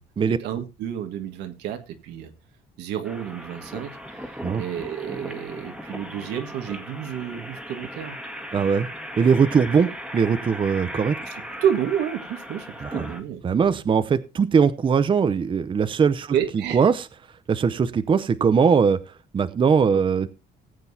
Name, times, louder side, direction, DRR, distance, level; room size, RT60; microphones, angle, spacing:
voice 1, 0.3-2.3 2.8-8.2 11.3-13.8 16.3-16.8, right 9 dB, 85° right, 7 dB, 1.7 m, -30 dB
sound 1, 3.0-13.2, equal, 5° right, 1.8 m, -37 dB
voice 2, 8.5-8.9 9.2-11.2 12.8-13.1 13.4-16.3 16.7-17.1 17.5-19.0 19.3-20.3, right 6 dB, 30° right, 12 dB, 0.7 m, -20 dB
19.0 x 7.9 x 2.8 m, 0.27 s
cardioid pair, 110°, 17 cm